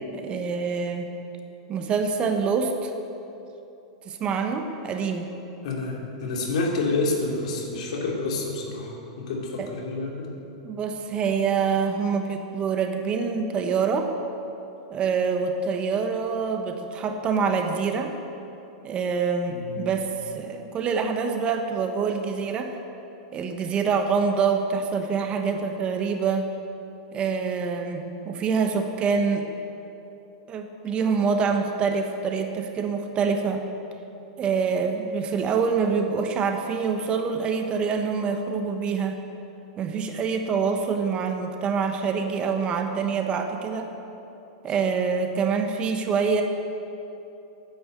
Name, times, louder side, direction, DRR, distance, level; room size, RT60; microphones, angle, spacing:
voice 1, 0.1-1.1 1.7-2.9 4.1-5.3 9.6-9.7 10.6-14.1 14.9-18.1 18.8-20.1 20.3-22.7 23.3-26.5 27.1-29.5 30.5-33.7 34.4-39.2 39.8-43.9 44.6-46.4, right 5 dB, 30° right, 5 dB, 1.1 m, -25 dB
voice 2, 5.6-10.3 19.5-19.8, left 3 dB, 75° left, -1 dB, 2.8 m, -28 dB
10.5 x 9.5 x 8.0 m, 2.9 s
hypercardioid pair, 130°, 4 cm